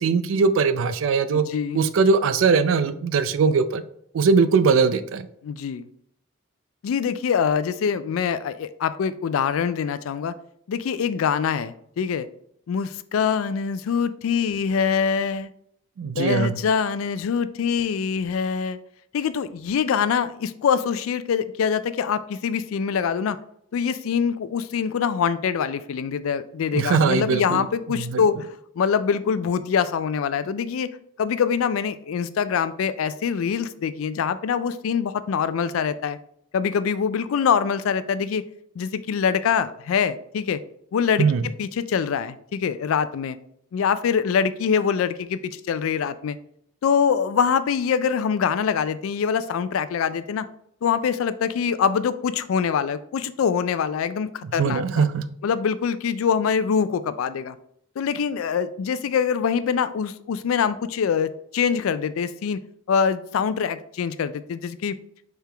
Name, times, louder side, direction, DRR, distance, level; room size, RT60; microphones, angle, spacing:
voice 1, 0.0-1.4 1.7-3.8 4.1-5.3 16.0-16.6 26.7-28.2 41.2-41.4 54.6-55.4, right 5 dB, 70° right, 12 dB, 0.4 m, -21 dB
voice 2, 1.3-1.8 5.4-5.9 6.8-10.3 10.7-12.3 12.7-15.5 16.2-18.8 19.1-23.4 23.7-28.4 28.8-30.9 31.2-36.2 36.5-38.4 38.8-40.6 40.9-41.3 41.6-43.4 43.7-46.4 46.8-50.5 50.8-55.0 55.4-57.6 58.0-62.6 62.9-65.0, left 7 dB, 85° left, 14 dB, 0.3 m, -24 dB
4.7 x 3.4 x 3.3 m, 0.71 s
head